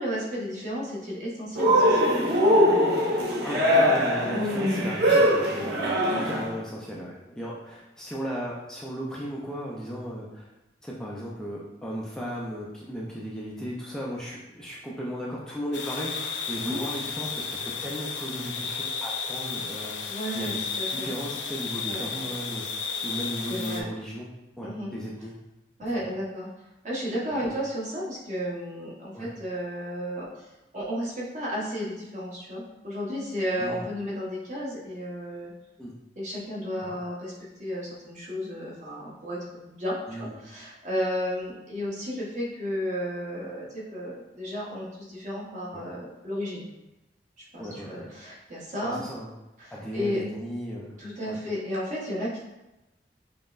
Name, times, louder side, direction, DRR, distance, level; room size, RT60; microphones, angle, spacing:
voice 1, 0.0-2.3 6.0-6.2 16.6-16.9 20.1-21.1 21.9-22.3 23.0-23.2 23.5-23.9 24.6-24.9 25.8-26.5 26.8-30.5 30.7-35.5 36.2-37.3 37.6-46.6 47.5-49.0 49.6-50.3 51.0-52.4, equal, 45° right, -6 dB, 1.0 m, -33 dB
Cheering, 1.6-6.5, equal, 65° right, 0.7 m, -22 dB
voice 2, 3.2-10.5 10.8-24.3 24.6-25.3 26.0-26.1 29.1-29.3 33.6-33.8 35.8-35.9 36.8-36.9 40.1-40.3 45.7-45.8 47.6-48.1 48.8-49.3 49.7-51.0 51.2-51.4, equal, 5° left, -5 dB, 0.4 m, -36 dB
sound 1, 15.7-23.8, left 5 dB, 75° left, 0.4 m, -33 dB
5.2 x 2.1 x 2.4 m, 0.99 s
head